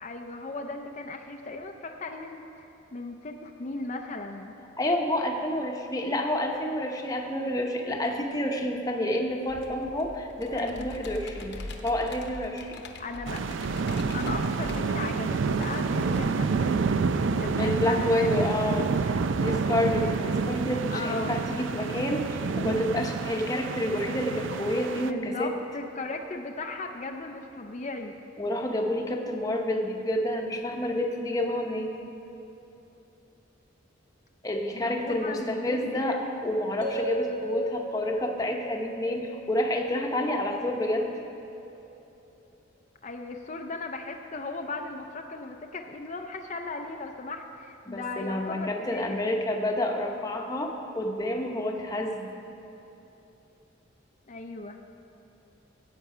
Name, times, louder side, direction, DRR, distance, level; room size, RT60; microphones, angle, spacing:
voice 1, 0.0-4.5 10.5-10.9 12.9-13.4 14.1-17.0 17.4-18.5 20.9-21.4 25.0-28.2 34.7-36.4 43.0-49.2 54.3-54.8, left 3 dB, 35° left, 3 dB, 0.5 m, -37 dB
voice 2, 4.8-12.8 17.6-25.5 28.4-31.9 34.4-41.2 47.9-52.3, left 1 dB, 20° left, 2 dB, 0.9 m, -29 dB
Computer keyboard, 9.5-16.2, left 2 dB, 60° left, 0.9 m, -43 dB
sound 1, 13.3-25.1, right 4 dB, 70° right, 0.4 m, -28 dB
sound 2, 36.8-40.9, right 1 dB, 40° right, 1.7 m, -37 dB
15.0 x 8.3 x 4.9 m, 2.9 s
head